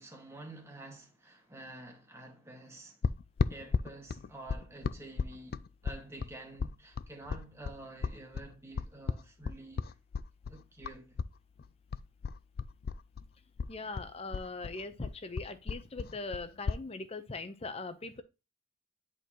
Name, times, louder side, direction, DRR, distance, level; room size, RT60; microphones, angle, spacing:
voice 1, 0.0-3.0 3.5-9.9 10.5-11.2, right 2 dB, 15° right, 1.8 m, -49 dB
sound 1, 3.0-11.3 11.6-13.3 13.6-16.8, left 5 dB, 45° left, 0.3 m, -35 dB
voice 2, 13.7-18.2, left 3 dB, 30° left, 0.8 m, -41 dB
10.5 x 4.5 x 3.0 m
head